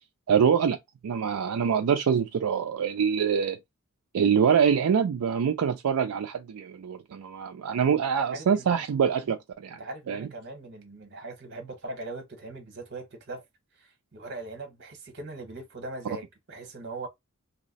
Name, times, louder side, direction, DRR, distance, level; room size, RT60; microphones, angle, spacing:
voice 1, 0.3-0.8 1.0-3.6 4.1-9.8 10.1-10.3, right 7 dB, 80° right, 0.4 m, -25 dB
voice 2, 8.2-8.8 9.8-13.4 13.7-17.1, right 2 dB, 50° right, 1.0 m, -40 dB
2.7 x 2.1 x 3.9 m
head